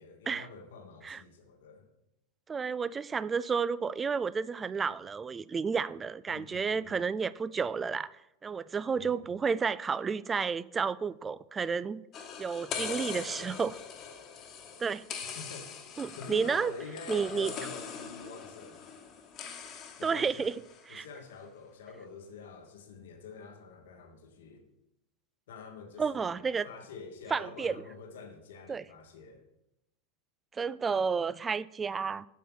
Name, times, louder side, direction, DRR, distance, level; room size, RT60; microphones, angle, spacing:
voice 1, 0.0-1.9 6.3-6.9 9.0-9.2 15.2-15.7 16.1-19.0 20.0-20.5 20.9-24.7 25.5-29.4, left 4 dB, 80° left, 1.3 m, -47 dB
voice 2, 2.5-8.1 8.4-12.0 12.4-13.8 14.8-15.0 16.0-16.7 17.1-17.5 20.0-20.5 20.9-21.1 26.0-26.7 27.3-27.8 28.7-28.8 30.5-32.2, right 5 dB, 20° right, 0.3 m, -31 dB
sound 1, 12.1-20.9, left 6 dB, 40° left, 1.3 m, -42 dB
7.2 x 5.7 x 6.1 m
hypercardioid pair, 105°, 0 cm